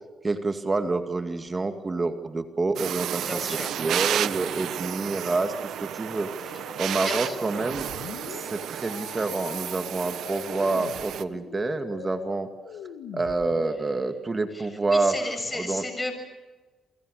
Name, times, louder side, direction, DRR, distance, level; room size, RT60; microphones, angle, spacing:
voice 1, 0.2-3.5 3.8-6.3 6.8-7.9 8.4-12.5 13.1-15.1 15.5-15.8, right 3 dB, 25° right, 7 dB, 2.2 m, -27 dB
sound 1, 2.8-11.2, right 10 dB, 75° right, 1.1 m, -32 dB
voice 2, 3.2-3.8 6.5-6.6 7.0-7.4 14.5-16.2, left 2 dB, 15° left, 7 dB, 6.8 m, -34 dB
sound 2, 6.3-13.9, left 8 dB, 85° left, 2.3 m, -42 dB
29.0 x 24.0 x 6.7 m, 1.2 s
cardioid pair, 90°, 0 cm